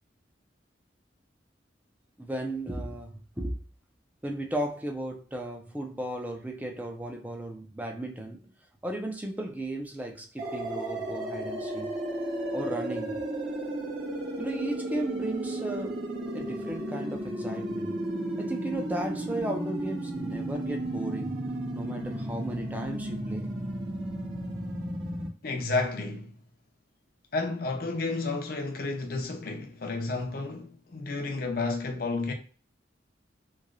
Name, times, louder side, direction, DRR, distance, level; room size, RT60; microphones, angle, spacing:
voice 1, 2.2-3.6 4.2-8.5 8.8-12.0 12.5-13.2 14.4-16.0 16.3-17.9 18.4-21.4 21.7-23.5, right 1 dB, 10° right, 0.5 m, -35 dB
sound 1, 10.4-25.3, right 1 dB, 70° right, 1.1 m, -33 dB
voice 2, 25.4-26.3 27.3-32.3, left 3 dB, 55° left, 0.6 m, -31 dB
3.1 x 2.8 x 2.5 m
head